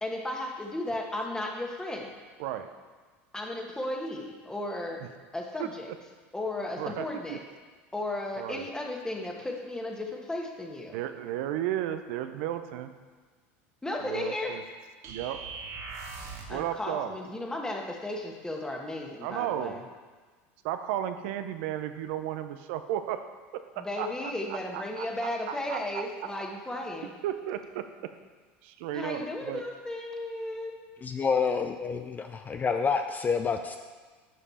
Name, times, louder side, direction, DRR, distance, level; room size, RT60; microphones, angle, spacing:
voice 1, 0.0-2.1 3.3-5.0 5.3-5.9 6.3-7.4 7.9-11.0 13.8-14.6 16.5-19.8 23.8-27.1 28.9-30.7, left 1 dB, 10° left, 1 dB, 1.4 m, -35 dB
voice 2, 6.8-7.4 8.3-8.7 10.9-12.9 14.0-14.6 15.1-15.4 16.5-17.2 19.2-19.8 20.6-23.2 23.5-26.0 27.2-28.1 28.6-29.6, right 11 dB, 70° right, 9 dB, 0.6 m, -34 dB
sound 1, 15.0-16.6, right 4 dB, 50° right, 1.3 m, -40 dB
voice 3, 31.0-33.8, left 5 dB, 25° left, 6 dB, 0.5 m, -28 dB
11.0 x 5.2 x 4.2 m, 1.4 s
hypercardioid pair, 90°, 7 cm